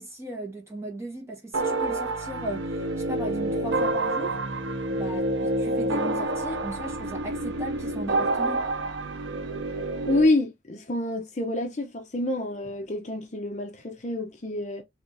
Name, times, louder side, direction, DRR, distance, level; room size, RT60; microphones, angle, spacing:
voice 1, 0.0-4.4 4.9-8.7, right 1 dB, 15° right, 1.3 m, -37 dB
sound 1, 1.5-10.3, right 2 dB, 90° right, 0.6 m, -28 dB
voice 2, 10.1-14.8, left 2 dB, 40° left, 0.6 m, -27 dB
3.4 x 3.4 x 2.5 m
head